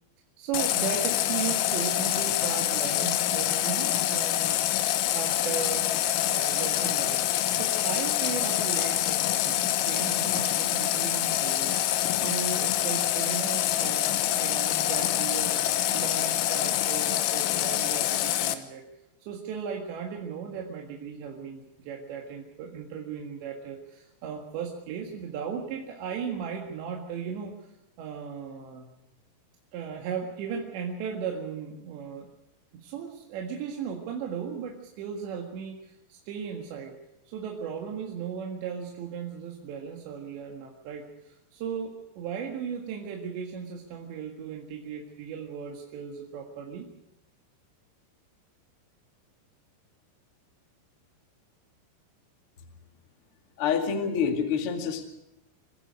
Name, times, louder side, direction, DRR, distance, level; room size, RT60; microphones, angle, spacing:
voice 1, 0.4-4.6 4.9-5.9 6.2-7.2 7.5-11.8 12.2-15.6 15.9-18.8 19.2-27.7 28.0-28.9 29.7-32.3 32.7-36.9 37.3-46.9, right 7 dB, 65° right, 0 dB, 3.8 m, -36 dB
Water tap faucet, 0.5-18.6, left 12 dB, 90° left, 3.8 m, -26 dB
voice 2, 53.6-55.1, left 6 dB, 45° left, 4 dB, 2.0 m, -27 dB
26.0 x 16.0 x 6.4 m, 0.90 s
omnidirectional pair, 5.8 m